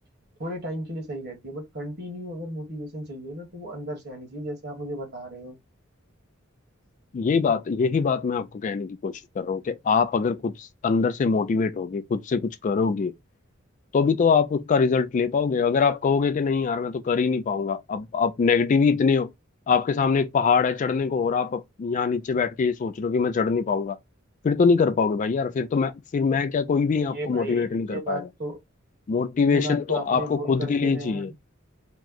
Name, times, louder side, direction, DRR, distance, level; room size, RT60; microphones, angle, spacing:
voice 1, 0.4-5.6 27.0-28.6 29.4-31.3, right 1 dB, 55° right, 1.3 m, -35 dB
voice 2, 7.1-13.1 13.9-19.3 19.7-24.0 24.4-28.2 29.1-31.3, left 5 dB, 40° left, 0.3 m, -23 dB
2.9 x 2.1 x 3.6 m
head